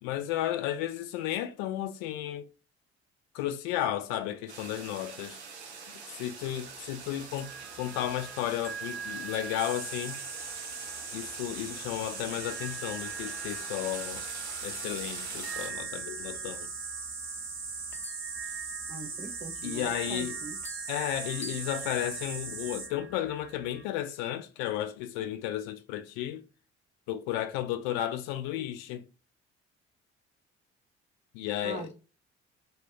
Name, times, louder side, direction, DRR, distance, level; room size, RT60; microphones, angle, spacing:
voice 1, 0.0-2.5 3.3-5.4 6.1-7.5 7.8-10.2 11.1-14.3 14.6-16.7 19.6-20.4 20.9-26.5 27.1-29.1 31.3-31.9, left 12 dB, 55° left, 0.5 m, -33 dB
sound 1, 4.5-15.7, right 5 dB, 80° right, 0.5 m, -45 dB
sound 2, 7.0-23.8, right 5 dB, 5° left, 0.8 m, -45 dB
sound 3, 9.6-22.9, right 4 dB, 60° right, 1.0 m, -39 dB
voice 2, 18.9-20.6 31.6-31.9, right 4 dB, 20° right, 0.5 m, -41 dB
2.4 x 2.2 x 3.4 m
figure-of-eight pair, 50°, 33 cm